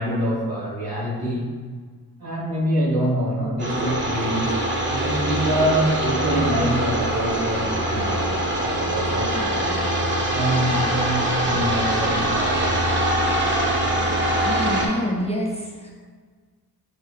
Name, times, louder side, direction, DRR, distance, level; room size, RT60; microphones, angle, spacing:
voice 1, 0.0-1.5 2.2-4.6 4.9-8.3 8.6-9.6 10.3-12.9, right 1 dB, 65° right, -5 dB, 1.3 m, -25 dB
sound 1, 3.6-14.9, right 1 dB, 30° right, 0.8 m, -23 dB
voice 2, 14.4-15.9, left 1 dB, 15° left, -1 dB, 0.5 m, -26 dB
4.7 x 2.0 x 3.3 m, 1.5 s
supercardioid pair, 50°, 39 cm